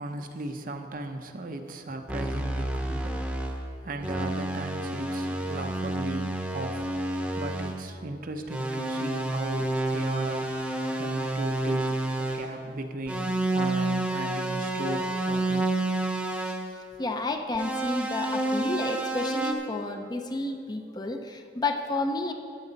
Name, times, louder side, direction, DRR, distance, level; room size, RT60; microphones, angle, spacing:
voice 1, 0.0-6.9 7.4-10.6 11.0-15.7, right 2 dB, 50° right, 6 dB, 0.7 m, -37 dB
sound 1, 2.1-3.6 4.0-7.8 8.5-12.5 13.1-16.7 17.6-19.5, right 2 dB, 5° right, 0.9 m, -29 dB
voice 2, 17.0-22.3, left 2 dB, 25° left, 5 dB, 0.6 m, -31 dB
13.0 x 9.6 x 4.0 m, 2.5 s
head